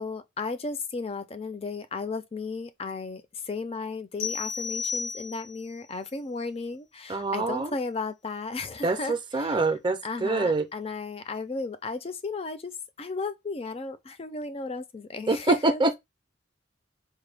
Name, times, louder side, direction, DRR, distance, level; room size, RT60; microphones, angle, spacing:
voice 1, 0.0-9.6 10.0-12.7 13.0-15.8, left 4 dB, 30° left, 0.4 m, -34 dB
sound 1, 4.2-5.7, left 5 dB, 85° left, 1.4 m, -33 dB
voice 2, 7.1-7.7 8.8-10.6 15.3-16.0, right 3 dB, 25° right, 0.4 m, -25 dB
4.5 x 2.2 x 3.3 m
head